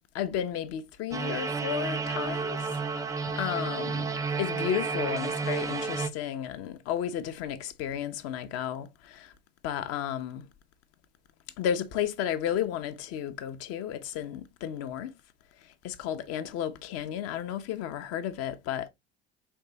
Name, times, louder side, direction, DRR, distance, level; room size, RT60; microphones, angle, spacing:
voice 1, 0.1-2.7 3.3-4.1 4.4-9.3 9.6-10.5 11.6-15.1 15.8-18.9, left 10 dB, 50° left, 0.7 m, -33 dB
sound 1, 1.1-6.1, right 4 dB, 10° right, 0.4 m, -31 dB
4.5 x 3.3 x 2.7 m
figure-of-eight pair, 65°, 32 cm